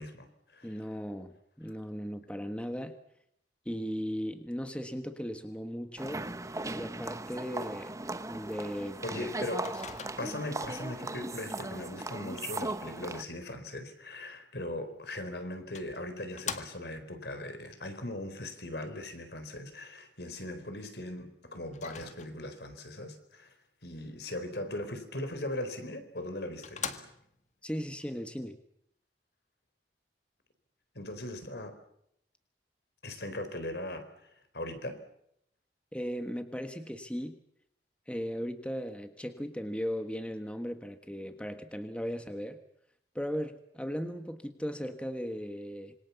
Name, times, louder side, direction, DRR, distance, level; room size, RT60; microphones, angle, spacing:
voice 1, 0.0-0.7 9.0-9.7 10.2-23.5 23.8-27.1 30.9-31.8 33.0-35.0, left 1 dB, 65° left, 9 dB, 4.3 m, -39 dB
voice 2, 0.6-2.9 3.6-6.2 6.8-7.9 8.3-9.3 27.6-28.6 35.9-37.4 38.1-42.6 43.1-45.9, equal, 5° left, 7 dB, 1.5 m, -37 dB
sound 1, 6.0-13.2, right 2 dB, 20° right, 1.0 m, -38 dB
Microwave oven, 9.6-10.5 14.9-15.0 15.7-17.1 21.7-22.6 25.7-25.8 26.3-26.4 26.6-27.5, left 6 dB, 40° left, 1.8 m, -42 dB
26.5 x 24.5 x 7.2 m, 0.75 s
head